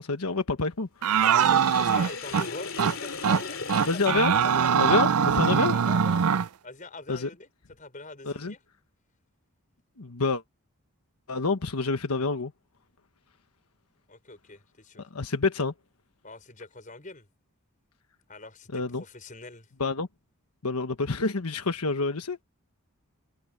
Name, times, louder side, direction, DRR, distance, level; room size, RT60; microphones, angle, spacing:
voice 1, 0.0-1.2 3.9-4.3 4.7-5.8 7.1-7.3 8.2-8.5 10.0-10.4 11.3-12.5 15.0-15.7 18.7-19.0 19.8-20.1 20.6-22.4, left 3 dB, 90° left, 1.3 m, -28 dB
sound 1, 1.0-2.5 2.8-3.0 3.2-3.4 3.7-6.5, right 7 dB, 80° right, 0.5 m, -22 dB
Sink (filling or washing), 1.2-5.1, left 4 dB, 65° left, 2.9 m, -38 dB
voice 2, 1.2-4.8 5.7-7.5 7.8-8.6 14.1-15.1 16.2-17.3 18.3-19.7, left 2 dB, 35° left, 5.6 m, -44 dB
head